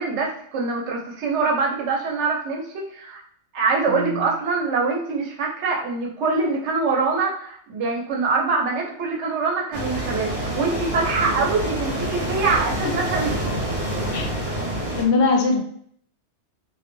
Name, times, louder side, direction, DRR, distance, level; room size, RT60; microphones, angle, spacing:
voice 1, 0.0-3.2 3.5-13.3, right 4 dB, 90° right, -1 dB, 0.9 m, -24 dB
voice 2, 3.9-4.2 14.1-14.5 14.9-15.6, left 3 dB, 75° left, 2 dB, 0.8 m, -21 dB
sound 1, 9.7-15.0, right 1 dB, 65° right, 1.0 m, -27 dB
2.3 x 2.1 x 3.0 m, 0.63 s
omnidirectional pair, 1.2 m